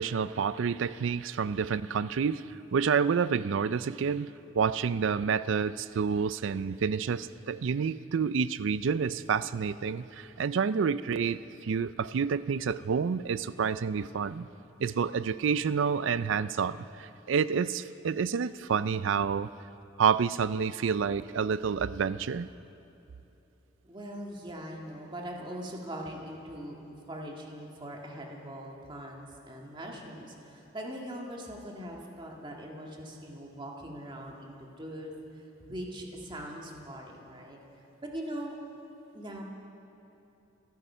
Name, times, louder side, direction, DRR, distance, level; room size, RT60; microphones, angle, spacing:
voice 1, 0.0-2.4 2.7-14.5 14.8-19.5 20.0-22.5, right 6 dB, 70° right, 16 dB, 0.4 m, -29 dB
voice 2, 23.8-26.8 27.1-37.6 38.0-38.6 39.1-39.4, equal, 25° right, 0 dB, 1.8 m, -41 dB
28.0 x 9.3 x 5.6 m, 2.9 s
head